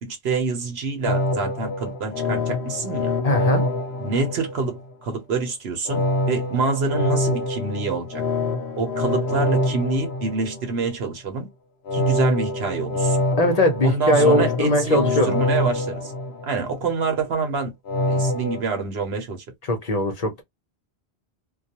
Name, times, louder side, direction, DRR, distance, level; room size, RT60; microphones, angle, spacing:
voice 1, 0.0-3.1 4.0-8.2 8.8-11.5 11.9-13.2 13.8-16.1 16.4-17.7 18.1-19.4, right 4 dB, 80° right, 1.0 m, -26 dB
sound 1, 1.1-4.9 5.9-10.9 11.9-16.9 17.9-18.6, left 2 dB, 80° left, 0.9 m, -25 dB
voice 2, 3.2-3.6 13.4-15.4 19.7-20.4, left 1 dB, 40° left, 0.8 m, -20 dB
2.3 x 2.2 x 2.7 m
omnidirectional pair, 1.1 m